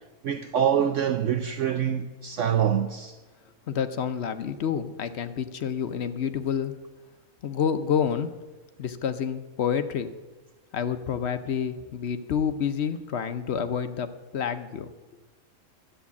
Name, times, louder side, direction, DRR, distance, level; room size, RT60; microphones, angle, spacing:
voice 1, 0.2-3.1, right 9 dB, 65° right, 0.9 m, -25 dB
voice 2, 3.7-6.8 7.4-8.3 8.8-10.1 10.7-14.9, left 7 dB, 55° left, 0.9 m, -28 dB
12.5 x 7.9 x 8.3 m
omnidirectional pair, 1.5 m